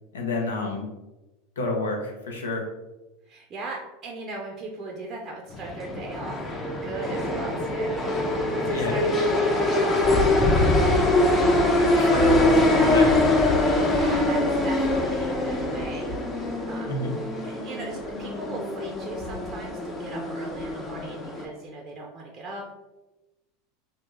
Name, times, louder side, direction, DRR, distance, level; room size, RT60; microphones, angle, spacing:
voice 1, 0.1-0.8 1.6-2.6 8.7-9.0 11.9-13.3 16.9-17.1, left 2 dB, 85° left, 1 dB, 0.6 m, -28 dB
voice 2, 3.3-11.2 12.5-13.1 13.8-22.7, right 2 dB, 35° right, -1 dB, 0.5 m, -38 dB
sound 1, 5.5-21.4, left 1 dB, 20° left, 0.6 m, -23 dB
2.6 x 2.2 x 3.1 m, 1.0 s
hypercardioid pair, 90°, 0 cm